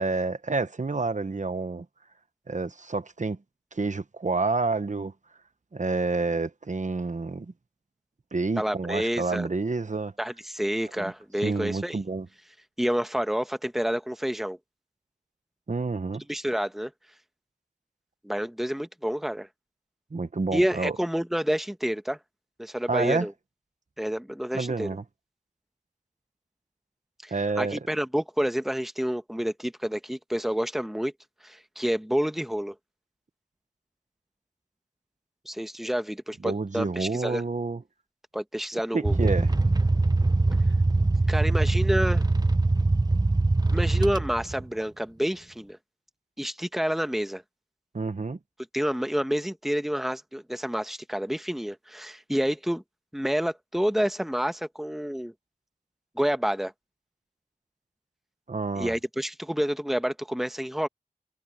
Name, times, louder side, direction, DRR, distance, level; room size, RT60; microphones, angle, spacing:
voice 1, 0.0-1.8 2.5-3.4 3.7-5.1 5.7-7.5 8.3-10.1 11.0-11.1 11.4-12.3 15.7-16.2 20.1-21.0 22.9-23.3 24.5-25.0 27.3-27.8 36.4-37.8 38.9-39.5 47.9-48.4 58.5-59.0, right 3 dB, 60° right, 1.1 m, -29 dB
voice 2, 8.6-9.5 10.2-12.0 12.8-14.6 16.3-16.9 18.2-19.5 20.5-22.2 22.6-23.3 24.0-24.9 27.2-31.1 31.4-32.7 35.4-37.4 38.3-39.3 41.3-42.2 43.7-45.8 46.4-47.4 48.7-52.8 53.1-55.3 56.2-56.7 58.7-60.9, equal, ahead, 1.3 m, -29 dB
sound 1, 39.0-44.6, right 2 dB, 30° right, 0.8 m, -22 dB
wide cardioid pair, 45°, 14 cm